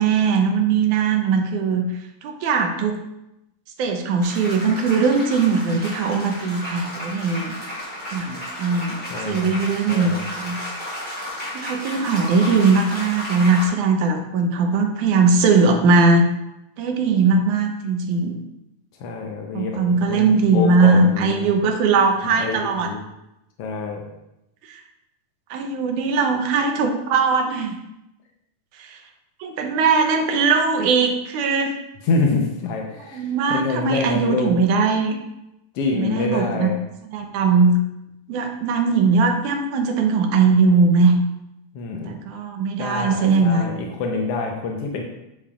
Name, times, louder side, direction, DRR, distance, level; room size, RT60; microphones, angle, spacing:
voice 1, 0.0-1.9 2.2-3.0 3.8-7.6 8.1-10.6 11.5-16.2 16.8-18.4 19.5-22.9 24.6-24.8 25.5-27.8 28.8-29.0 29.4-31.8 33.0-35.2 35.9-36.7 37.1-37.8 38.3-41.1 42.1-43.9, right 4 dB, 75° right, 3 dB, 2.2 m, -20 dB
sound 1, 4.2-13.7, left 1 dB, 20° left, 2.6 m, -33 dB
voice 2, 9.1-9.5 9.9-10.3 19.0-19.8 20.1-21.5 22.2-23.0 23.6-24.1 32.0-34.6 35.7-36.7 41.7-42.1 42.8-45.0, left 3 dB, 80° left, 1 dB, 1.4 m, -26 dB
8.5 x 7.4 x 2.4 m, 0.89 s
omnidirectional pair, 3.7 m